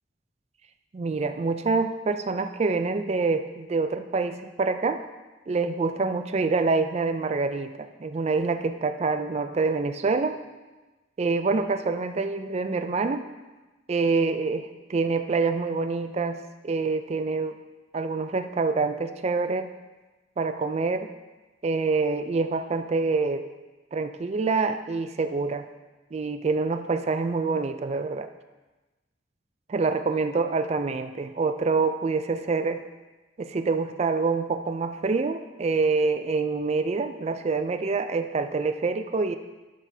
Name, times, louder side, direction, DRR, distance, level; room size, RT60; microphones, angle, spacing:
voice 1, 0.9-5.0 5.5-10.4 11.2-13.3 13.9-17.6 17.9-19.7 20.4-21.1 21.6-23.5 23.9-25.7 26.1-28.3 29.7-32.8 33.4-39.4, right 4 dB, 35° right, 9 dB, 0.4 m, -26 dB
11.5 x 5.9 x 2.7 m, 1.2 s
head